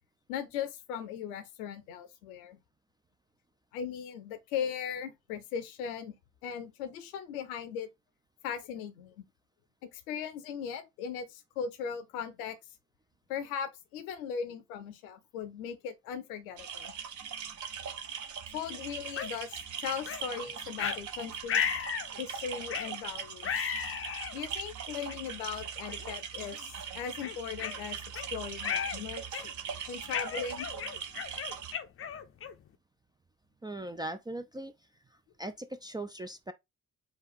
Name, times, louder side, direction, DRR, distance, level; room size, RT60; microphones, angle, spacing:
voice 1, 0.3-2.6 3.7-6.1 6.4-7.9 8.4-9.2 9.8-12.6 13.3-16.9 18.5-21.6 22.2-23.7 24.3-28.0 28.3-29.4 29.9-30.7, left 7 dB, 70° left, 0.8 m, -38 dB
sound 1, 16.6-31.7, right 7 dB, 40° right, 0.8 m, -41 dB
sound 2, 19.2-19.3 20.1-20.2 20.8-21.0 21.5-22.1 22.7-22.9 23.4-24.4 25.1-25.2 25.9-26.1 26.5-26.7 27.2-28.3 28.6-29.0 29.3-29.7 30.1-32.7, left 7 dB, 30° left, 0.6 m, -34 dB
voice 2, 33.6-34.7 35.4-36.5, right 1 dB, 10° right, 0.4 m, -39 dB
5.0 x 2.4 x 4.1 m
figure-of-eight pair, 40°, 45 cm